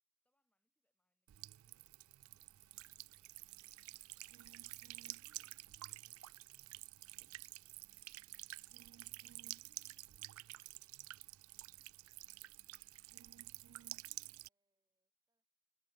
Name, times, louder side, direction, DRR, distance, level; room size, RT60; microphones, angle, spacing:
voice 1, 0.2-4.0 4.6-6.3 13.1-13.4, left 1 dB, 5° left, 6.9 m, -93 dB
Buzz / Water tap faucet / Trickle dribble, 1.3-14.5, right 18 dB, 90° right, 0.3 m, -51 dB
sound 1, 4.5-9.5, right 1 dB, 40° right, 1.4 m, -84 dB
voice 2, 11.6-12.7 13.7-15.5, right 1 dB, 15° right, 6.9 m, -93 dB
head